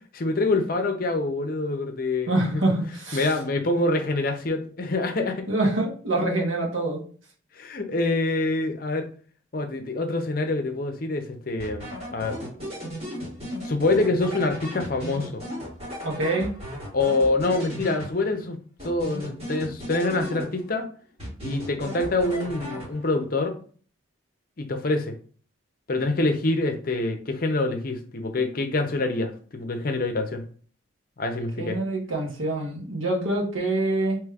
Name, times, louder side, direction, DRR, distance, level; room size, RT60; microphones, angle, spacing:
voice 1, 0.1-2.6 3.1-5.5 7.6-9.1 9.5-12.4 13.6-15.4 16.9-18.6 18.8-20.9 21.4-23.6 24.6-25.2 25.9-30.4 31.2-31.8, left 2 dB, 45° left, 5 dB, 0.6 m, -26 dB
voice 2, 2.3-3.3 5.5-7.0 16.0-16.5 31.6-34.2, right 2 dB, 85° right, 0 dB, 1.2 m, -25 dB
sound 1, 11.6-18.4 18.8-20.8 21.2-23.2, equal, 30° right, 1.4 m, -36 dB
4.9 x 3.0 x 2.4 m, 0.43 s
head